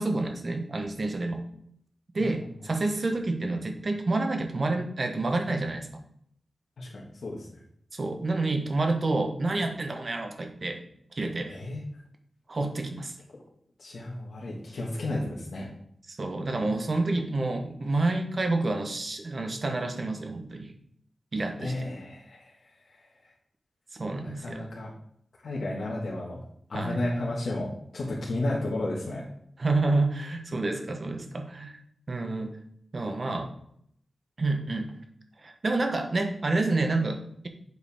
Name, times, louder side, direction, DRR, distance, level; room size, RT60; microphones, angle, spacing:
voice 1, 0.0-1.4 2.1-5.9 7.9-10.8 11.2-11.6 12.5-13.1 16.1-20.7 21.3-21.9 23.9-24.7 26.7-27.0 29.6-31.7 32.1-32.6 32.9-33.5 34.4-35.0 35.4-37.5, right 2 dB, 40° right, 4 dB, 0.9 m, -28 dB
voice 2, 6.8-7.5 11.5-11.9 13.8-15.7 21.6-22.5 22.9-23.0 24.2-24.9 25.4-26.4 26.7-29.2, left 1 dB, 80° left, -4 dB, 1.7 m, -32 dB
7.9 x 4.9 x 3.5 m, 0.69 s
wide cardioid pair, 145°, 0 cm